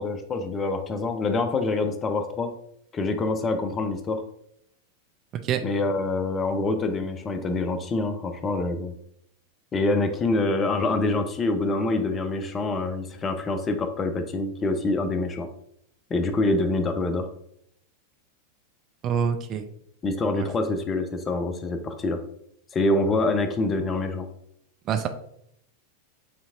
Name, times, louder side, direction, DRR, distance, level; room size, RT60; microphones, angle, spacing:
voice 1, 0.0-2.5 2.9-4.2 5.6-8.9 9.7-15.5 16.1-17.3 20.0-22.2 22.7-24.3, left 2 dB, 25° left, 8 dB, 0.5 m, -26 dB
voice 2, 19.0-19.7 20.3-20.5 24.9-25.1, right 8 dB, 35° right, 8 dB, 0.4 m, -26 dB
6.7 x 2.9 x 2.4 m, 0.72 s
figure-of-eight pair, 90°, 0 cm